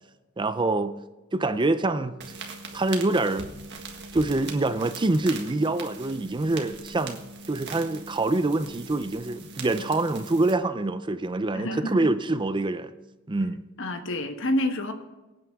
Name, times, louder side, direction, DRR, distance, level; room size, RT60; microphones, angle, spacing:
voice 1, 0.4-1.0 1.3-2.1 2.7-3.5 4.1-12.9 13.3-13.6, right 2 dB, 25° right, 0.5 m, -25 dB
sound 1, 2.2-10.5, right 3 dB, 55° right, 1.8 m, -41 dB
voice 2, 11.5-12.1 13.8-14.9, left 1 dB, 65° left, 1.2 m, -28 dB
24.0 x 9.1 x 3.6 m
head